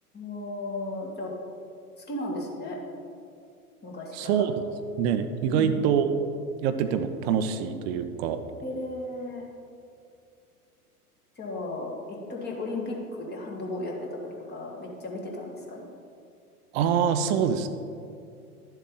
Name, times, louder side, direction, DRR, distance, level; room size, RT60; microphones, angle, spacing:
voice 1, 0.1-1.3 2.0-2.8 3.8-4.4 5.5-5.9 8.6-9.4 11.4-15.9, left 2 dB, 20° left, -1 dB, 1.8 m, -35 dB
voice 2, 4.1-4.5 5.0-6.1 6.6-8.4 16.7-17.7, right 8 dB, 45° right, 9 dB, 0.7 m, -25 dB
12.0 x 7.4 x 3.8 m, 2.4 s
figure-of-eight pair, 90°, 46 cm